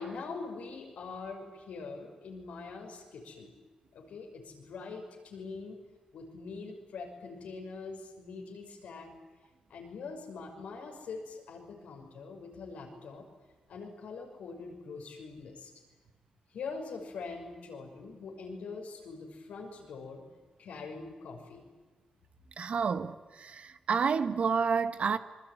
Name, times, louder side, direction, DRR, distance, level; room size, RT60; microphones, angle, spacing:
voice 1, 0.0-3.5 3.9-5.8 6.1-9.1 9.7-13.2 13.7-15.7 16.5-20.2 20.6-21.7, left 4 dB, 85° left, 6.0 m, -43 dB
voice 2, 22.6-25.2, right 6 dB, 65° right, 1.3 m, -29 dB
26.0 x 22.0 x 9.4 m
cardioid pair, 65°, 2 cm